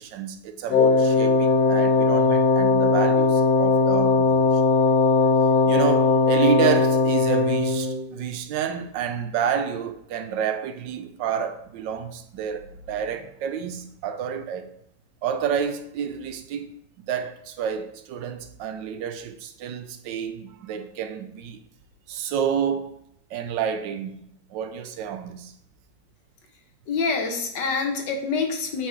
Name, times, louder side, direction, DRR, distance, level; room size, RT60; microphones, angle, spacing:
voice 1, 0.0-4.5 5.7-14.7 15.2-16.7 17.1-21.6 22.1-23.0 23.3-24.2 24.5-25.5, right 8 dB, 90° right, 1.4 m, -29 dB
Wind instrument woodwind instrument, 0.7-8.0, left 3 dB, 65° left, 1.3 m, -19 dB
voice 2, 26.9-28.9, left 4 dB, 85° left, 1.8 m, -26 dB
8.7 x 5.0 x 3.2 m
omnidirectional pair, 1.9 m